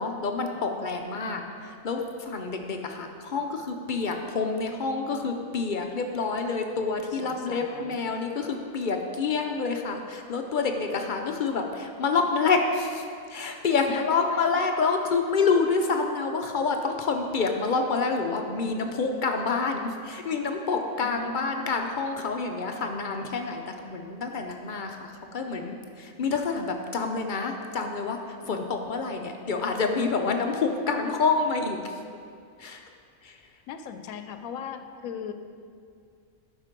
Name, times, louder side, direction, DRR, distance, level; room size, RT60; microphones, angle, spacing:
voice 1, 0.0-13.0 13.3-32.0 32.6-32.8 33.2-33.4, left 4 dB, 55° left, 4 dB, 0.6 m, -28 dB
voice 2, 1.1-1.5 7.0-8.0 13.9-14.4 15.0-15.1 21.0-21.7 28.4-28.9 33.7-35.3, left 6 dB, 90° left, 8 dB, 1.0 m, -39 dB
11.5 x 4.5 x 5.1 m, 2.3 s
omnidirectional pair, 1.4 m